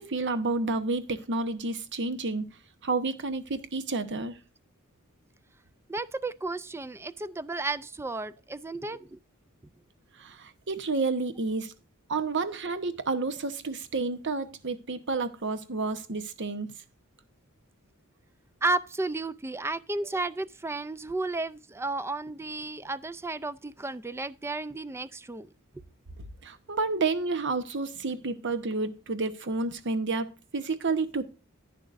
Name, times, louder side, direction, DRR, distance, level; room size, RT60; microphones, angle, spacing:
voice 1, 0.0-2.5 2.8-4.3 10.2-11.7 12.1-16.7 26.2-31.2, right 3 dB, 55° right, 1.0 m, -30 dB
voice 2, 5.9-9.2 18.6-25.5, right 2 dB, 10° right, 0.3 m, -33 dB
11.0 x 9.5 x 2.5 m
head